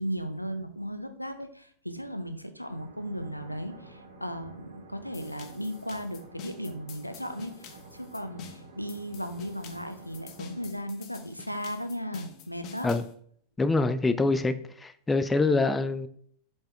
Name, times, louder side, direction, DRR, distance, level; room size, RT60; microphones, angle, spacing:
voice 1, 0.0-12.9, equal, 90° left, 8 dB, 0.6 m, -36 dB
sound 1, 2.7-10.7, right 2 dB, 75° right, 1.2 m, -50 dB
sound 2, 5.1-13.1, left 6 dB, 35° left, 0.9 m, -48 dB
voice 2, 13.6-16.1, left 3 dB, 10° left, 12 dB, 0.4 m, -25 dB
7.6 x 4.4 x 3.4 m, 0.62 s
figure-of-eight pair, 90°, 0 cm